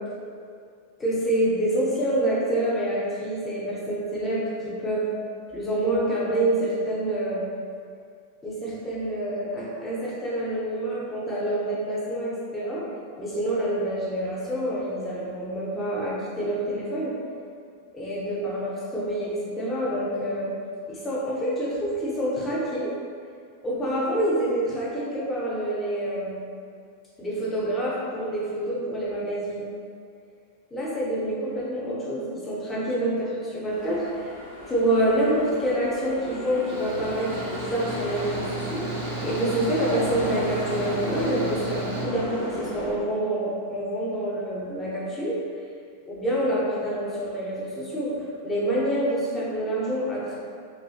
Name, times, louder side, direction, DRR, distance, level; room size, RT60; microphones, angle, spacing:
voice 1, 1.0-5.1 5.5-7.4 8.4-12.9 13.2-17.1 17.9-20.5 20.9-22.9 23.6-26.4 27.2-29.6 30.7-34.3 34.7-45.4 46.1-50.4, right 1 dB, 15° left, -7 dB, 0.6 m, -27 dB
sound 1, 33.7-42.9, equal, 50° left, 0.8 m, -34 dB
Mechanical fan, 36.7-42.0, right 3 dB, 55° right, 0.5 m, -36 dB
2.4 x 2.4 x 2.2 m, 2.2 s
figure-of-eight pair, 90°, 0 cm